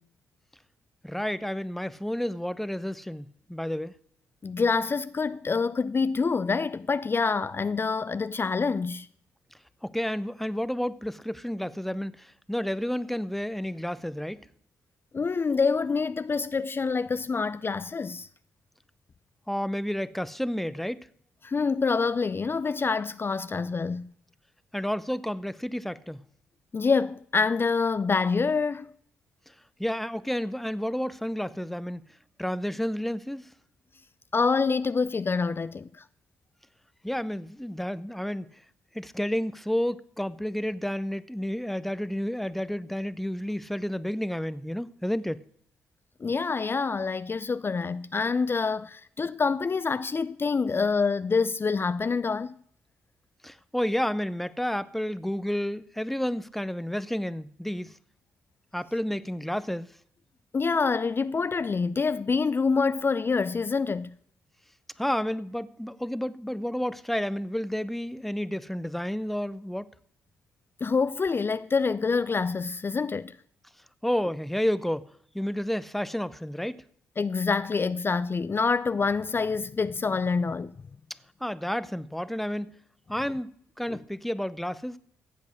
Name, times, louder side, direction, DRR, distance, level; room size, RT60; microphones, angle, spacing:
voice 1, 1.0-3.9 9.8-14.5 19.5-21.1 24.7-26.2 29.5-29.6 29.8-32.0 32.4-33.5 37.0-38.5 38.9-45.4 53.4-58.0 58.7-59.9 65.0-69.9 74.0-76.8 81.4-82.7 83.1-83.5 83.8-85.0, equal, 5° left, 0.8 m, -31 dB
voice 2, 4.4-9.1 15.1-18.3 21.4-24.1 26.7-28.9 34.3-36.0 46.2-52.6 60.5-64.1 70.8-73.4 77.2-80.7 83.9-84.0, left 4 dB, 35° left, 0.5 m, -26 dB
15.0 x 8.4 x 6.6 m
hypercardioid pair, 40°, 7 cm